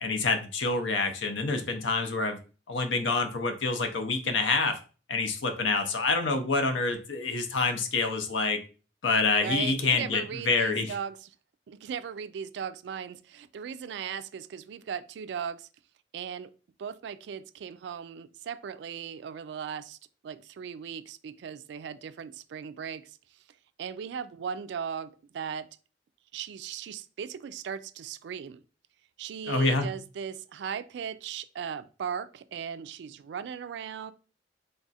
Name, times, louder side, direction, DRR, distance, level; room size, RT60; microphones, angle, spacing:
voice 1, 0.0-2.4 2.7-4.8 5.1-8.6 9.0-11.0 29.5-30.0, left 3 dB, 85° left, 0.6 m, -27 dB
voice 2, 9.4-11.3 11.7-15.7 16.1-16.5 16.8-20.0 20.2-23.2 23.8-25.7 26.3-28.6 29.2-34.1, right 7 dB, 65° right, 0.3 m, -37 dB
3.4 x 2.4 x 4.0 m
head